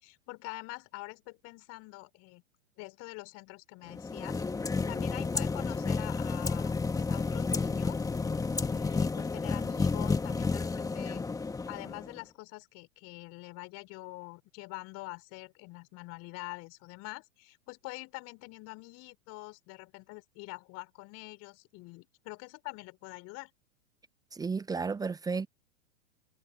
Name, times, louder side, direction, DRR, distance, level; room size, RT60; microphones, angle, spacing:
voice 1, 0.0-2.4 2.8-4.4 4.9-8.1 8.6-11.2 11.7-23.5, left 25 dB, 40° left, 4.8 m, -45 dB
sound 1, 3.9-12.2, left 4 dB, 10° left, 2.0 m, -31 dB
voice 2, 24.3-25.5, right 4 dB, 10° right, 0.9 m, -33 dB
figure-of-eight pair, 105°, 39 cm